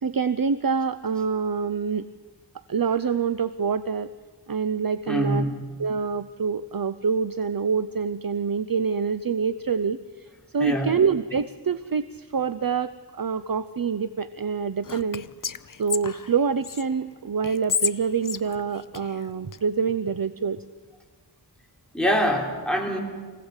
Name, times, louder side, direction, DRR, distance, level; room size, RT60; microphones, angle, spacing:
voice 1, 0.0-2.1 2.7-4.1 4.5-5.4 5.8-10.3 10.5-15.3 15.8-20.6, right 6 dB, 55° right, 13 dB, 0.7 m, -26 dB
voice 2, 5.1-5.6 10.6-10.9 21.9-23.0, equal, ahead, 0 dB, 3.9 m, -24 dB
Whispering, 14.8-16.8 17.4-19.6, left 6 dB, 50° left, 0.6 m, -31 dB
24.5 x 17.0 x 8.1 m, 1.5 s
wide cardioid pair, 50°, 42 cm